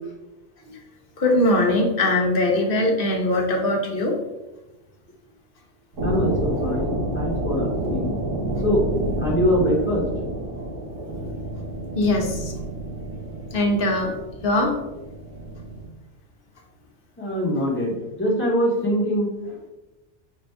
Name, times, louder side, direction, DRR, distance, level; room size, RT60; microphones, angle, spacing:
voice 1, 1.2-4.2 11.9-12.5 13.5-14.2 14.4-14.7, left 1 dB, 55° left, 1 dB, 0.9 m, -21 dB
sound 1, 5.9-15.8, right 1 dB, 80° right, 1.5 m, -29 dB
voice 2, 6.0-8.1 8.6-8.8 9.2-10.1 17.2-19.7, equal, 10° left, -5 dB, 1.2 m, -23 dB
6.2 x 2.6 x 3.3 m, 1.0 s
omnidirectional pair, 1.2 m